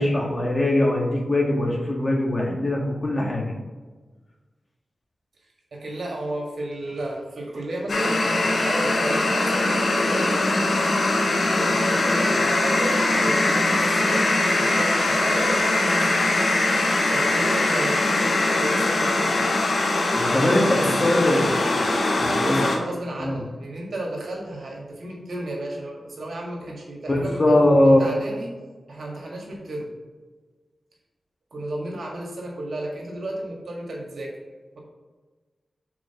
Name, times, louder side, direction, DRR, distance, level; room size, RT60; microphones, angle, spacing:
voice 1, 0.0-3.5 20.1-21.5 21.7-21.9 22.2-22.6 23.2-23.4 27.1-28.0, left 1 dB, 40° left, -1 dB, 1.8 m, -21 dB
voice 2, 5.7-8.2 8.6-10.4 11.3-16.4 17.1-19.4 20.7-20.9 22.1-28.5 28.9-29.9 31.5-34.3, right 1 dB, 70° right, -1 dB, 1.7 m, -33 dB
sound 1, 7.9-22.8, left 2 dB, 70° left, 1.1 m, -22 dB
4.9 x 4.4 x 5.8 m, 1.3 s
cardioid pair, 40°, 0 cm